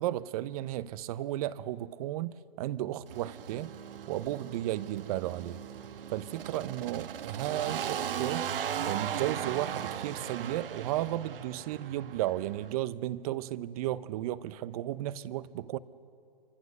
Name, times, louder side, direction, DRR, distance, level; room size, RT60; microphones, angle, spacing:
voice 1, 0.0-3.7 4.1-5.6 6.1-8.5 8.8-15.8, right 14 dB, 40° right, 0.9 m, -34 dB
sound 1, 3.1-12.7, right 9 dB, 70° right, 1.3 m, -38 dB
29.5 x 25.0 x 6.7 m
hypercardioid pair, 130°, 29 cm